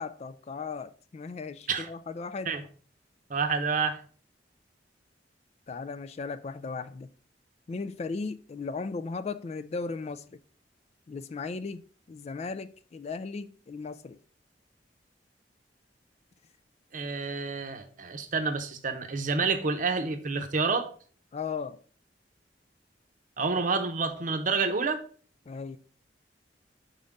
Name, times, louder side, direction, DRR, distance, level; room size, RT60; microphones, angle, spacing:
voice 1, 0.0-2.5 5.7-7.1 7.7-10.4 11.1-14.2 21.3-21.8 25.5-25.8, left 4 dB, 40° left, 0.3 m, -36 dB
voice 2, 3.3-4.0 16.9-20.9 23.4-25.0, right 4 dB, 50° right, 0.7 m, -28 dB
5.3 x 3.6 x 5.2 m
head